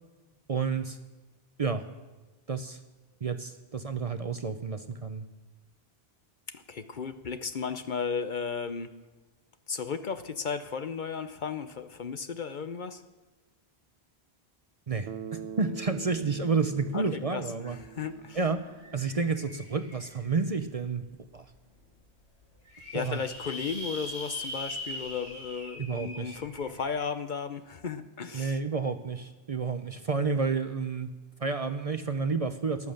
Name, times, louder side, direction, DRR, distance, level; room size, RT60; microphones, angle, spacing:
voice 1, 0.5-1.0 1.6-1.8 2.5-2.8 3.2-5.2 14.9-17.8 18.3-18.6 18.9-21.0 21.3-21.5 22.9-23.2 25.8-26.4 28.3-31.1 31.4-32.9, right 4 dB, 40° right, 9 dB, 0.7 m, -30 dB
voice 2, 6.5-9.0 9.7-13.0 16.9-18.4 22.9-28.6, left 6 dB, 50° left, 10 dB, 0.8 m, -35 dB
Bass guitar, 15.1-19.3, right 8 dB, 75° right, 0.9 m, -43 dB
sound 1, 17.9-18.0 18.3-20.4 21.0-21.1 21.5-21.6 21.8-21.9 22.4-27.0, left 1 dB, 85° left, 6.4 m, -42 dB
14.0 x 11.0 x 6.5 m, 1.2 s
omnidirectional pair, 1.1 m